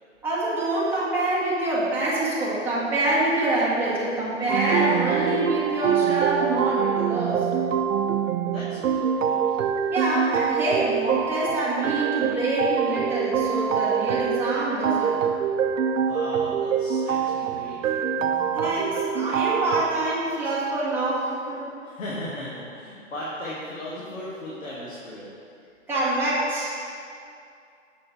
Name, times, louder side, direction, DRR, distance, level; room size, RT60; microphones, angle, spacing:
voice 1, 0.2-7.4 9.9-15.2 18.5-21.6 25.9-26.8, right 2 dB, 5° right, -9 dB, 1.4 m, -25 dB
sound 1, 4.5-19.8, right 8 dB, 80° right, 0.6 m, -25 dB
voice 2, 8.4-9.4 15.9-19.0 21.8-25.3, left 1 dB, 85° left, -6 dB, 1.3 m, -37 dB
6.3 x 4.4 x 4.4 m, 2.5 s
hypercardioid pair, 130°, 38 cm